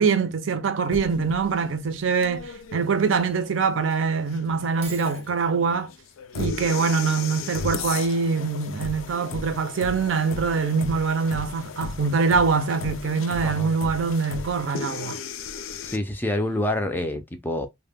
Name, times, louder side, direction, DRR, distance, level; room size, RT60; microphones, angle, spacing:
voice 1, 0.0-5.9 6.3-15.2, right 5 dB, 70° right, 0.5 m, -24 dB
sound 1, 0.9-16.0, left 5 dB, 75° left, 0.4 m, -36 dB
Shatter, 4.8-5.4, right 5 dB, 30° right, 0.6 m, -40 dB
voice 2, 15.8-17.7, left 1 dB, 10° left, 0.4 m, -27 dB
2.1 x 2.1 x 3.2 m
head